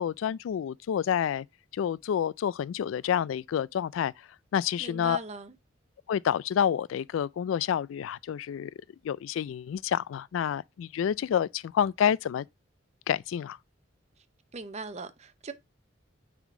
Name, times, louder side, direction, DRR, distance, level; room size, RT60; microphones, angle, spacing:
voice 1, 0.0-1.5 1.7-4.1 4.5-5.2 6.1-8.7 9.0-12.5 13.1-13.6, left 9 dB, 85° left, 0.3 m, -28 dB
voice 2, 4.8-5.5 14.5-15.5, right 3 dB, 35° right, 0.7 m, -39 dB
9.2 x 3.6 x 3.7 m
head